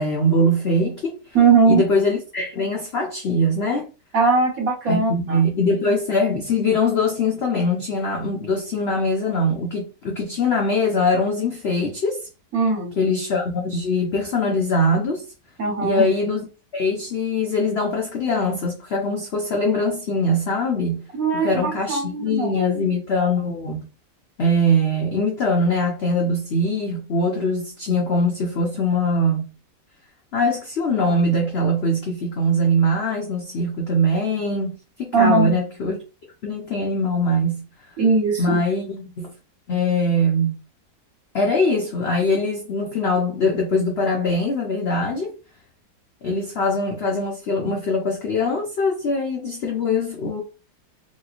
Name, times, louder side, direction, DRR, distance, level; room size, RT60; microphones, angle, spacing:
voice 1, 0.0-1.2 1.6-3.9 4.9-12.2 13.0-15.2 15.8-16.5 16.7-21.1 21.3-23.9 24.4-29.5 30.3-34.7 35.0-36.0 36.4-37.6 38.4-39.3 39.7-40.5 41.3-45.3 46.2-50.4, left 1 dB, 75° left, 0.5 m, -22 dB
voice 2, 1.3-1.8 4.1-5.4 12.5-12.9 15.6-16.0 21.1-22.7 35.1-35.5 38.0-38.6, right 4 dB, 55° right, 1.5 m, -19 dB
3.1 x 2.9 x 2.4 m
omnidirectional pair, 1.9 m